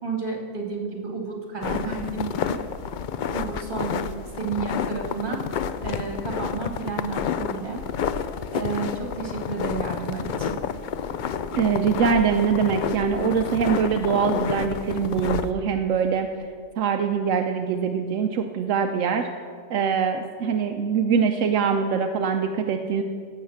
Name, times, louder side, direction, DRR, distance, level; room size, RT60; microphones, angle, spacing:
voice 1, 0.0-2.6 3.3-4.1 4.3-5.4 5.8-7.8 8.5-10.5, right 4 dB, 40° right, 0 dB, 2.3 m, -31 dB
sound 1, 1.6-15.5, left 7 dB, 60° left, 0.5 m, -30 dB
voice 2, 11.5-16.3 16.8-19.3 19.7-23.0, right 6 dB, 80° right, 5 dB, 1.0 m, -23 dB
16.5 x 6.6 x 7.1 m, 2.1 s
omnidirectional pair, 1.3 m